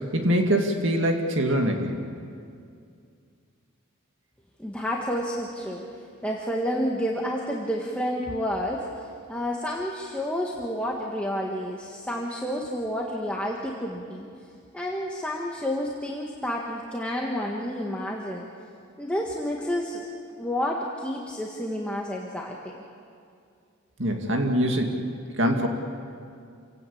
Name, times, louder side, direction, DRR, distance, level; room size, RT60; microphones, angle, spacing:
voice 1, 0.1-1.9 24.0-25.0 25.4-25.7, equal, 60° right, 3 dB, 2.3 m, -23 dB
voice 2, 4.6-14.3 14.7-18.5 19.0-20.0 20.4-22.8, equal, 5° left, -2 dB, 1.5 m, -30 dB
28.0 x 17.0 x 8.6 m, 2.4 s
head